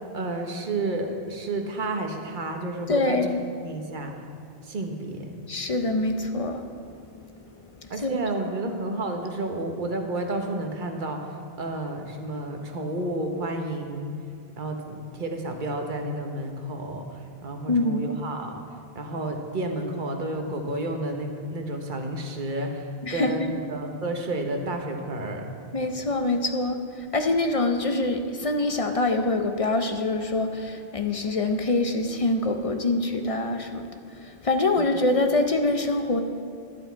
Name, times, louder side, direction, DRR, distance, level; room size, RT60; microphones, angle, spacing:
voice 1, 0.1-3.2 3.6-4.2 4.6-5.4 7.9-14.2 14.6-18.6 18.9-25.4 34.8-34.9, right 2 dB, 50° right, 3 dB, 1.2 m, -31 dB
voice 2, 2.9-3.4 5.5-6.7 8.0-8.2 8.7-8.8 17.7-18.0 23.0-23.5 25.7-36.2, left 2 dB, 40° left, 6 dB, 0.6 m, -25 dB
11.5 x 10.5 x 4.5 m, 2.5 s
omnidirectional pair, 1.1 m